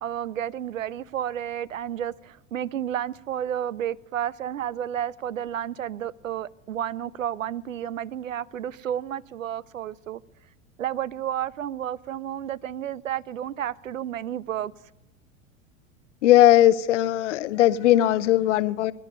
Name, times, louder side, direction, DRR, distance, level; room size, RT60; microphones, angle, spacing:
voice 1, 0.0-10.2 10.8-14.7, right 10 dB, 80° right, 0.5 m, -31 dB
voice 2, 16.2-18.9, left 13 dB, 65° left, 0.7 m, -19 dB
19.5 x 11.5 x 5.3 m
figure-of-eight pair, 80°, 39 cm